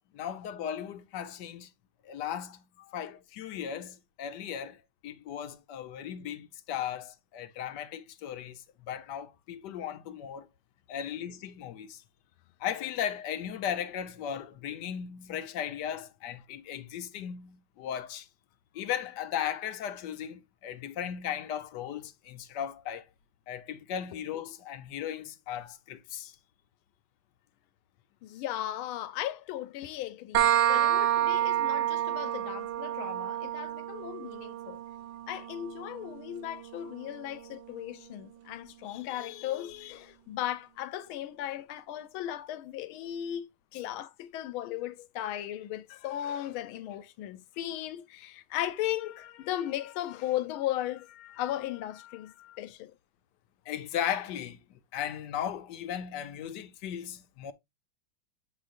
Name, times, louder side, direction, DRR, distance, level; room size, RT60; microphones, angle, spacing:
voice 1, 0.1-1.7 2.0-2.6 2.9-10.5 10.9-12.0 12.6-18.3 18.7-23.1 23.5-26.4 53.7-57.5, left 9 dB, 70° left, 1.1 m, -36 dB
voice 2, 28.2-34.8 35.3-43.5 43.7-52.9, left 12 dB, 85° left, 1.5 m, -36 dB
sound 1, 30.3-37.8, right 12 dB, 70° right, 1.4 m, -30 dB
7.6 x 5.0 x 2.5 m
omnidirectional pair, 2.3 m